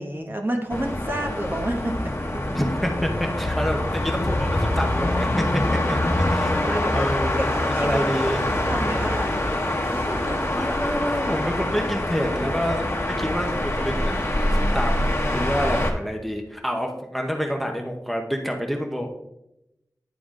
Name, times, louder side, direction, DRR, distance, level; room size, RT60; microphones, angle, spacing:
voice 1, 0.0-2.6 6.6-7.1 7.4-7.5 7.7-8.0 8.5-9.3 9.7-10.6, right 1 dB, 30° right, 3 dB, 1.0 m, -30 dB
sound 1, 0.7-15.9, left 1 dB, 40° left, 1.1 m, -25 dB
voice 2, 2.5-5.6 5.9-8.4 10.5-19.1, equal, ahead, 2 dB, 0.8 m, -28 dB
10.0 x 3.8 x 3.7 m, 0.88 s
wide cardioid pair, 65°, 7 cm